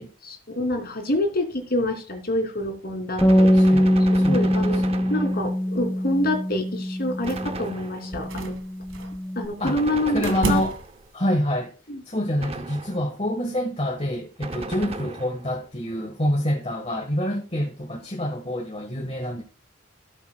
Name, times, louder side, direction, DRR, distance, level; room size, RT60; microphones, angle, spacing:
voice 1, 0.2-3.7 4.3-4.8 5.1-8.5 9.3-10.6 11.9-12.0 19.0-19.1, left 1 dB, 50° left, 3.0 m, -27 dB
Bass guitar, 3.2-9.5, equal, 10° left, 0.8 m, -22 dB
Gunshot gunfire, 3.2-5.7 7.2-8.3 9.6-11.1 12.4-13.2 14.4-15.6, right 2 dB, 30° right, 0.7 m, -36 dB
voice 2, 3.5-4.9 9.6-9.8 10.1-10.8 11.1-11.7 12.0-19.4, equal, 30° left, 1.5 m, -27 dB
sound 1, 7.2-7.7 8.1-9.2 10.2-11.1, right 2 dB, 80° right, 1.8 m, -31 dB
17.5 x 7.1 x 2.3 m
head